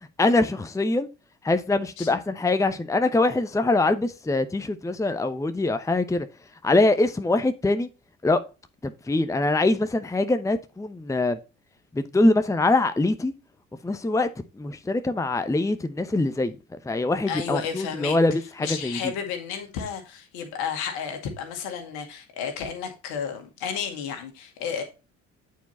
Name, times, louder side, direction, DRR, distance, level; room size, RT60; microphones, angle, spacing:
voice 1, 0.2-1.1 1.4-6.3 6.6-7.9 8.2-8.4 8.8-11.4 11.9-13.3 13.8-14.3 14.5-16.6 16.8-19.1, left 2 dB, 10° left, 0.8 m, -23 dB
voice 2, 17.3-18.2 18.6-24.8, left 7 dB, 70° left, 2.1 m, -32 dB
9.3 x 4.6 x 4.2 m
figure-of-eight pair, 45°, 38 cm